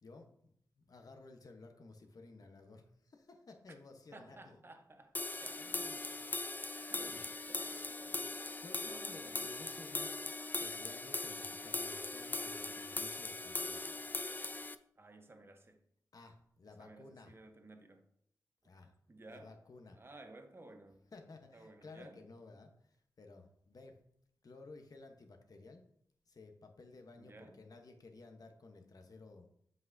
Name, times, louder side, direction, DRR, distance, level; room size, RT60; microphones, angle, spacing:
voice 1, 0.0-4.6 5.6-6.3 6.9-7.3 8.6-10.2 10.6-14.1 16.1-17.3 18.6-18.9 19.3-20.0 21.1-24.0 24.4-25.9 26.3-29.5, left 3 dB, 55° left, 1.0 m, -55 dB
voice 2, 4.1-5.1 5.4-6.1 6.8-8.4 8.9-9.5 15.0-15.8 16.7-18.1 19.1-19.5 19.9-21.1 21.5-22.3 27.2-27.6, right 2 dB, 30° right, 0.9 m, -56 dB
sound 1, 5.1-14.7, left 2 dB, 25° left, 0.4 m, -40 dB
7.4 x 5.9 x 2.7 m
cardioid pair, 65°, 8 cm